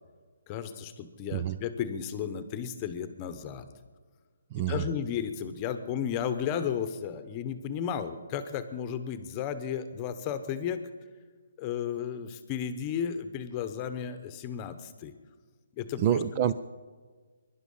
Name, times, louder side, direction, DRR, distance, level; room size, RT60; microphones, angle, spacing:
voice 1, 0.5-3.7 4.7-10.8 11.6-15.1 15.7-16.0, left 8 dB, 20° left, 11 dB, 1.0 m, -33 dB
voice 2, 4.5-4.8 16.0-16.5, right 10 dB, 25° right, 13 dB, 0.4 m, -27 dB
22.5 x 11.0 x 5.5 m, 1.5 s
hypercardioid pair, 165°, 0 cm